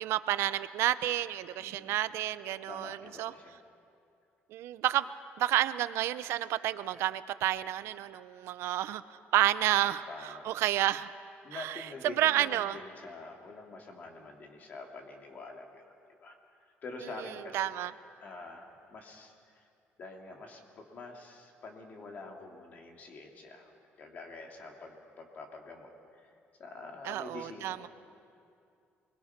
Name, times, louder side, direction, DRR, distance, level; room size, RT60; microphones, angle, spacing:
voice 1, 0.0-3.3 4.5-5.1 5.4-9.0 9.3-11.1 11.5-12.8 17.5-17.9 27.0-27.9, right 13 dB, 75° right, 14 dB, 0.6 m, -30 dB
voice 2, 1.6-2.0 2.7-3.6 9.6-10.6 11.4-15.8 16.2-17.7 18.2-19.7 20.0-23.7 24.0-26.3 26.6-27.9, left 3 dB, 40° left, 2 dB, 2.8 m, -46 dB
28.0 x 21.5 x 5.9 m, 2.4 s
cardioid pair, 160°, 4 cm